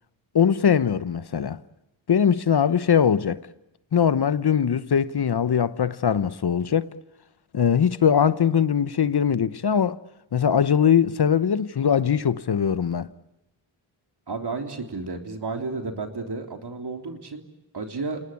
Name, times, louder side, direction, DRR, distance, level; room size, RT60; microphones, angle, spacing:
voice 1, 0.3-1.6 2.1-3.4 3.9-6.9 7.5-10.0 10.3-13.1, left 8 dB, 55° left, 1.0 m, -21 dB
voice 2, 14.3-17.4 17.7-18.2, right 3 dB, 55° right, 3.5 m, -32 dB
28.5 x 19.0 x 8.6 m
cardioid pair, 55°, 47 cm